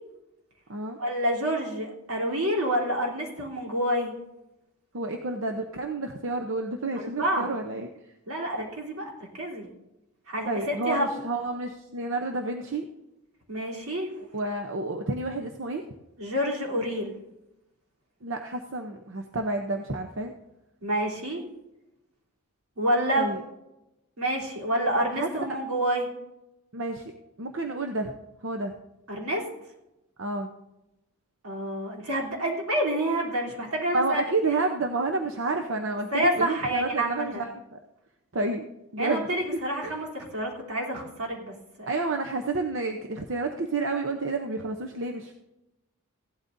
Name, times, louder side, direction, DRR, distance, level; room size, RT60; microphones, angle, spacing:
voice 1, 1.0-4.1 7.2-7.5 8.3-9.0 9.4-9.7 10.3-11.1 13.5-14.1 16.2-17.1 20.8-21.4 22.8-23.3 24.2-26.1 29.1-29.4 31.4-34.6 36.1-37.4 39.0-41.9, right 1 dB, 85° right, -2 dB, 3.4 m, -28 dB
voice 2, 4.9-7.9 10.5-12.9 14.3-15.9 18.2-20.3 23.2-23.4 25.1-25.3 26.7-27.1 27.4-28.1 28.4-28.7 30.2-30.5 33.9-37.5 38.3-38.7 38.9-39.3 39.8-40.0 41.9-45.3, right 3 dB, 60° right, 4 dB, 0.8 m, -30 dB
16.0 x 12.0 x 2.7 m, 0.93 s
head